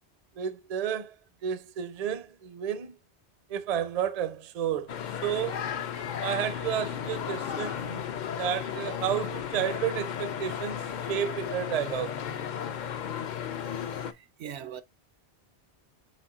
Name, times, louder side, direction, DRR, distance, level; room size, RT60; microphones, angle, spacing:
voice 1, 0.4-1.2 1.4-2.9 3.5-4.9 5.2-5.6 6.2-8.0 8.4-10.8 11.1-12.2, right 9 dB, 45° right, 0.5 m, -31 dB
sound 1, 4.9-14.1, left 8 dB, 55° left, 0.5 m, -34 dB
voice 2, 13.6-14.8, right 9 dB, 80° right, 0.8 m, -43 dB
4.2 x 4.2 x 2.4 m
omnidirectional pair, 1.1 m